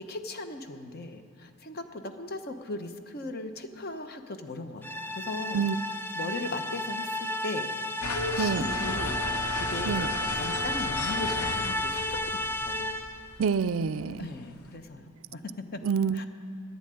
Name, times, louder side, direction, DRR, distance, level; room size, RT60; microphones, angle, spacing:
voice 1, 0.0-5.7 6.1-7.7 8.1-9.2 9.6-10.0 10.3-13.1 14.2-15.8 16.1-16.3, left 2 dB, 45° left, 7 dB, 0.9 m, -38 dB
sound 1, 4.8-13.3, left 1 dB, 10° left, 0.4 m, -32 dB
sound 2, 8.0-14.7, left 2 dB, 85° left, 1.0 m, -36 dB
voice 2, 13.4-14.3 15.8-16.3, right 6 dB, 65° right, 16 dB, 0.4 m, -27 dB
11.0 x 9.7 x 8.8 m, 2.5 s
head